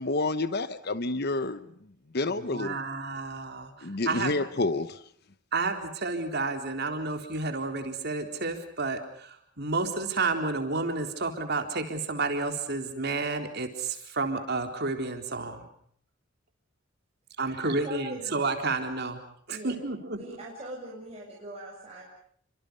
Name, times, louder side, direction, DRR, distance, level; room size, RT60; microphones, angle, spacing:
voice 1, 0.0-1.6 2.1-2.8 3.8-5.0, left 2 dB, 55° left, 12 dB, 1.1 m, -29 dB
voice 2, 2.2-4.4 5.5-15.7 17.4-19.2 19.5-20.4, right 3 dB, 55° right, 5 dB, 3.9 m, -31 dB
voice 3, 17.6-18.4 19.5-19.8 20.1-22.0, right 1 dB, 30° right, -4 dB, 7.4 m, -41 dB
30.0 x 25.5 x 5.3 m, 0.64 s
head